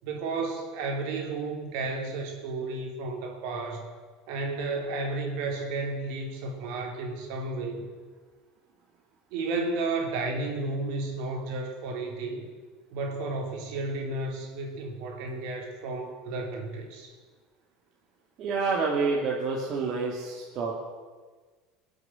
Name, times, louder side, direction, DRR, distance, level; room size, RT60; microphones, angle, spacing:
voice 1, 0.0-3.8 4.3-7.8 9.3-12.5 12.9-17.1, right 3 dB, 70° right, 2 dB, 3.5 m, -32 dB
voice 2, 18.4-20.7, right 4 dB, 50° right, -1 dB, 2.6 m, -28 dB
21.5 x 8.1 x 7.8 m, 1.4 s
supercardioid pair, 105°, 0 cm